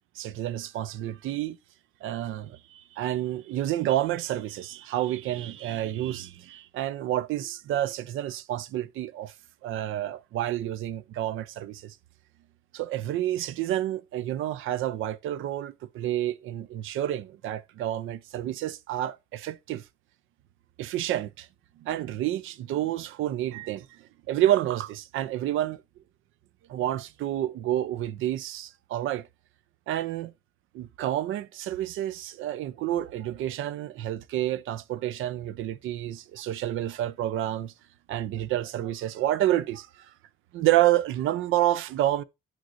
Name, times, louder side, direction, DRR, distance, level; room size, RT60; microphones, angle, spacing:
voice 1, 0.2-1.6 2.0-9.3 9.6-12.0 12.7-19.8 20.8-21.5 21.8-23.9 24.3-25.8 26.7-29.3 29.9-30.3 30.7-37.7 38.1-40.1 40.5-42.2, right 13 dB, 85° right, 0.6 m, -29 dB
9.0 x 6.3 x 2.5 m
cardioid pair, 90°, 20 cm